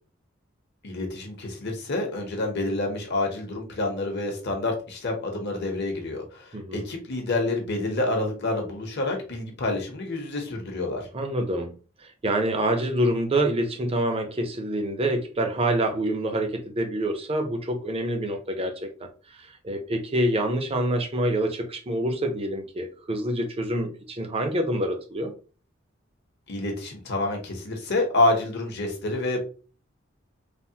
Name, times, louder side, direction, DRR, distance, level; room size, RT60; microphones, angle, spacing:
voice 1, 0.8-11.1 26.5-29.4, left 2 dB, 55° left, 0.8 m, -28 dB
voice 2, 6.5-6.8 11.1-25.3, right 1 dB, 30° right, 0.5 m, -27 dB
3.3 x 2.0 x 2.7 m
head